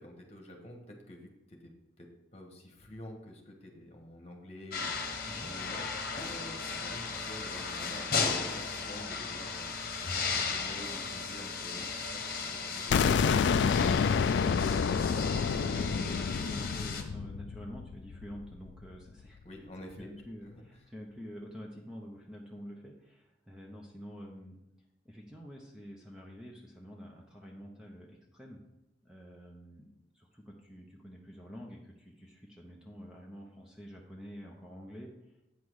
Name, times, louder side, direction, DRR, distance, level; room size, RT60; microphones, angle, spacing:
voice 1, 0.0-1.7 2.0-9.7 10.0-13.8 19.4-20.1, left 1 dB, 35° left, 2 dB, 1.4 m, -49 dB
sound 1, 4.7-17.0, left 5 dB, 50° left, 1.1 m, -36 dB
sound 2, 12.9-18.7, left 6 dB, 70° left, 0.3 m, -28 dB
voice 2, 14.6-19.4 20.0-24.6 25.0-28.6 29.0-29.9 30.1-35.3, equal, 5° right, -1 dB, 0.8 m, -47 dB
8.4 x 6.0 x 4.8 m, 0.95 s
head